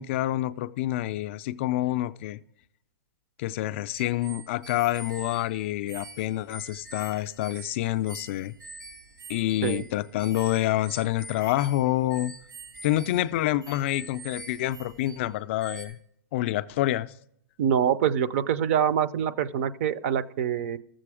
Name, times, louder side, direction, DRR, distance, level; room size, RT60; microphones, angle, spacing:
voice 1, 0.0-2.4 3.4-8.5 9.3-12.3 12.8-16.0 16.3-17.1, left 15 dB, 40° left, 0.3 m, -27 dB
sound 1, 3.9-15.3 15.6-15.9, right 2 dB, 90° right, 4.7 m, -45 dB
voice 2, 17.6-20.8, right 8 dB, 45° right, 0.5 m, -25 dB
13.0 x 7.6 x 4.8 m
hypercardioid pair, 160°, 11 cm